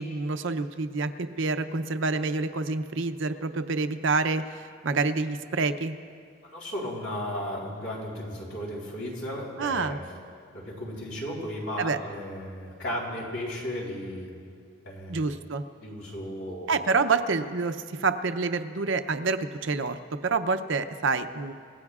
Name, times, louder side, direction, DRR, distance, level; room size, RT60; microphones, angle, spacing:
voice 1, 0.0-5.9 9.6-10.0 11.8-12.0 15.1-15.6 16.7-21.5, right 4 dB, 60° right, 9 dB, 0.6 m, -27 dB
voice 2, 6.5-10.0 10.5-14.3 14.8-15.3 15.8-16.7, equal, 65° left, -3 dB, 3.8 m, -35 dB
28.0 x 16.5 x 2.4 m, 2.2 s
head